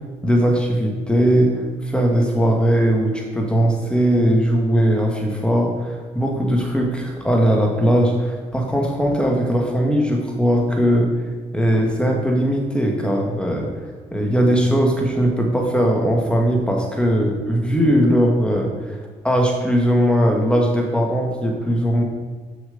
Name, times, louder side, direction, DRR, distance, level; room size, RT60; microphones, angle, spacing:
voice 1, 0.2-1.5 1.8-11.1 11.5-13.7 14.1-19.0 19.2-22.0, equal, 5° left, 0 dB, 2.2 m, -19 dB
6.4 x 6.2 x 5.3 m, 1.5 s
hypercardioid pair, 50°, 18 cm